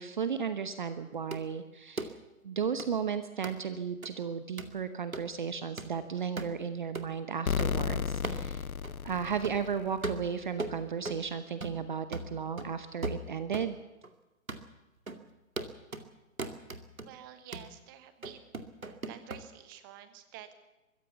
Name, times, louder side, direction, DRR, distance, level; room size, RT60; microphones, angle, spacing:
voice 1, 0.0-2.2 2.4-8.6 9.0-13.8, right 7 dB, 35° right, 11 dB, 1.0 m, -34 dB
sound 1, 1.3-1.4 2.0-2.1 2.8-2.9 3.4-3.6 4.0-4.1 4.6-4.8 5.1-5.3 5.8-5.9 6.4-6.6 7.0-7.1 7.6-7.7 8.2-8.5 8.8-8.9 9.4-9.6 10.0-11.3 11.6-11.9 12.1-13.7 14.0-14.1 14.5-14.7 15.1-15.2 15.6-16.1 16.4-17.1 17.5-17.7 18.2-19.4, right 2 dB, 75° right, 2.4 m, -38 dB
sound 2, 7.5-10.2, left 6 dB, 80° left, 0.7 m, -33 dB
voice 2, 17.0-18.5 18.8-20.5, right 11 dB, 15° right, 11 dB, 1.2 m, -50 dB
23.0 x 16.0 x 7.1 m, 1.1 s
figure-of-eight pair, 140°, 42 cm